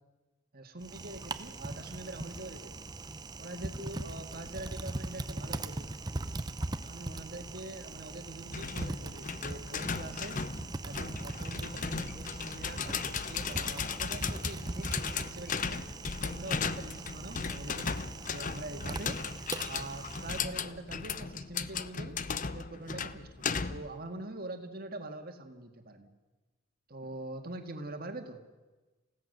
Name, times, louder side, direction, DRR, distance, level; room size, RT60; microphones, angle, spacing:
voice 1, 0.5-2.9 3.4-5.9 6.1-6.4 6.8-10.4 10.8-14.9 15.2-15.8 16.2-19.2 19.6-22.2 22.5-26.1 26.9-28.4, right 2 dB, 40° right, 5 dB, 1.9 m, -44 dB
Typing, 0.8-20.4, right 2 dB, 20° right, 0.6 m, -41 dB
sound 1, 8.5-24.0, left 5 dB, 35° left, 0.6 m, -36 dB
28.5 x 16.5 x 6.7 m, 1.2 s
head